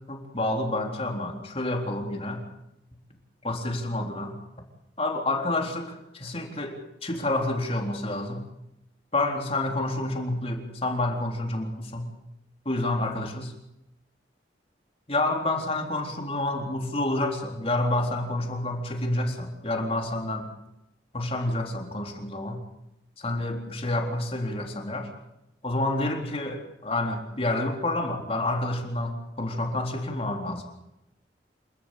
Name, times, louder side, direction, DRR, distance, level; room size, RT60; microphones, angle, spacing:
voice 1, 0.1-2.4 3.4-4.3 5.0-8.4 9.1-12.1 12.7-13.5 15.1-20.5 21.1-22.6 23.2-25.1 25.6-30.6, left 2 dB, 35° left, 3 dB, 3.8 m, -29 dB
28.5 x 13.0 x 8.4 m, 0.86 s
head